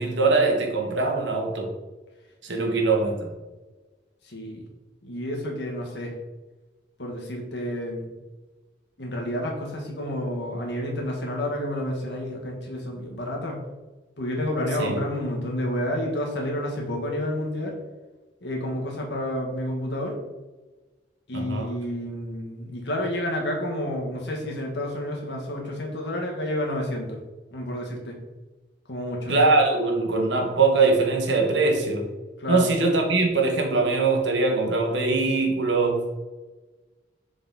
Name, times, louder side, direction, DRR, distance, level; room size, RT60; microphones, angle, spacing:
voice 1, 0.0-1.7 2.4-3.3 14.8-15.0 21.3-21.7 29.3-32.0 32.5-36.1, right 3 dB, 80° right, 2 dB, 1.3 m, -22 dB
voice 2, 2.5-2.9 4.2-4.7 5.0-6.1 7.0-8.1 9.0-13.6 14.2-17.8 18.4-20.1 21.3-27.2 27.5-28.2 28.9-29.3 32.4-32.7, left 1 dB, 65° left, 0 dB, 1.6 m, -30 dB
6.9 x 3.9 x 4.0 m, 1.2 s
head